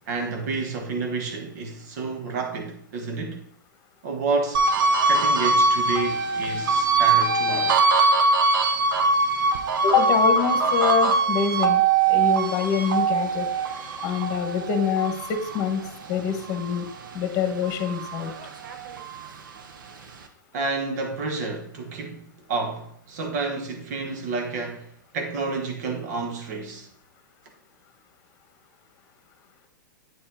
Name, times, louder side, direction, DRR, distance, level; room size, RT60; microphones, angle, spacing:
voice 1, 0.0-3.4 4.0-4.7 5.1-7.8 20.5-26.9, right 3 dB, 55° right, 1.2 m, -30 dB
sound 1, 4.5-17.2 17.6-19.3, right 4 dB, 70° right, 0.9 m, -22 dB
voice 2, 9.8-11.8 12.1-13.5 14.0-15.8 16.1-16.8 17.1-18.3, left 7 dB, 30° left, 1.3 m, -25 dB
8.8 x 4.4 x 3.7 m
hypercardioid pair, 125°, 11 cm